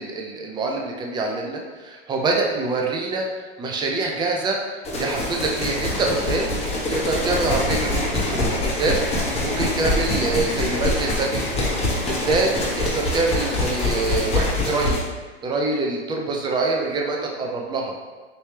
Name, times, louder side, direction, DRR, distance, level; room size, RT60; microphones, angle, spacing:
voice 1, 0.0-4.6 5.0-9.0 9.4-11.5 12.1-15.0 15.4-17.9, right 3 dB, 15° right, 0 dB, 0.5 m, -25 dB
sound 1, 4.8-15.0, left 2 dB, 20° left, 1.2 m, -24 dB
4.2 x 3.1 x 3.3 m, 1.3 s
hypercardioid pair, 110°, 31 cm